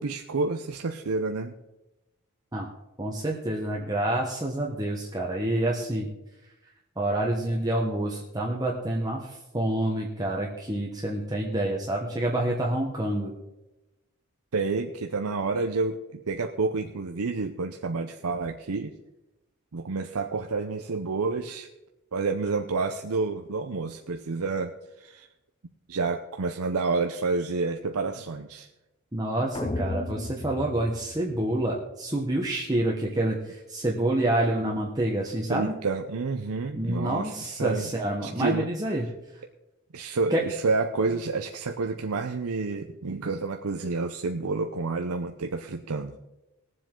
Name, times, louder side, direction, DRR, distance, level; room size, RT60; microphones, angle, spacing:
voice 1, 0.0-1.5 14.5-18.9 19.7-21.7 22.1-24.7 25.0-25.3 25.9-28.7 34.6-34.8 35.5-37.9 38.2-38.7 39.9-46.2, right 4 dB, 85° right, 5 dB, 0.7 m, -29 dB
voice 2, 3.0-6.1 7.0-13.3 29.1-35.7 36.7-39.0 40.3-40.4, right 1 dB, 15° right, -2 dB, 1.1 m, -28 dB
sound 1, 29.5-31.8, left 2 dB, 25° left, 0.7 m, -34 dB
20.0 x 7.6 x 3.8 m, 0.99 s
head